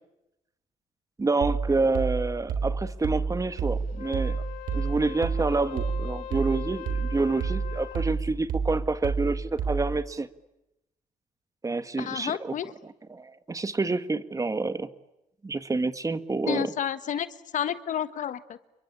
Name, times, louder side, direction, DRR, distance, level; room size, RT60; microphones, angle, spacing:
voice 1, 1.2-4.4 4.7-10.3 11.6-12.5 13.1-14.9 15.4-16.7, right 3 dB, 25° right, 12 dB, 1.8 m, -28 dB
sound 1, 1.4-10.1, right 5 dB, 80° right, 3.8 m, -30 dB
Wind instrument woodwind instrument, 3.9-8.2, left 12 dB, 80° left, 2.5 m, -42 dB
voice 2, 12.0-12.7 16.5-17.3 17.5-18.6, left 9 dB, 65° left, 13 dB, 1.4 m, -30 dB
29.0 x 23.0 x 8.7 m, 0.90 s
cardioid pair, 90°, 14 cm